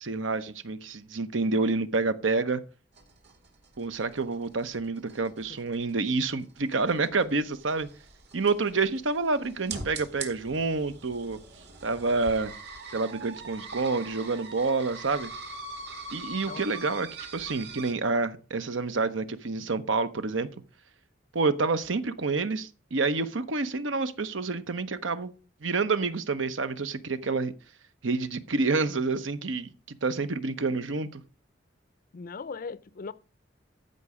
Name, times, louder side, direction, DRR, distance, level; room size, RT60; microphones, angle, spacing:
voice 1, 0.0-2.6 3.8-7.9 8.3-11.4 11.8-12.5 12.9-15.3 16.1-17.1 17.3-20.5 21.3-25.3 25.6-27.5 28.0-29.7 30.0-31.2, right 3 dB, 80° right, 0.9 m, -28 dB
sound 1, 2.9-17.9, right 3 dB, 60° right, 2.3 m, -43 dB
voice 2, 32.1-33.1, left 4 dB, 45° left, 0.5 m, -38 dB
14.0 x 5.4 x 4.9 m
head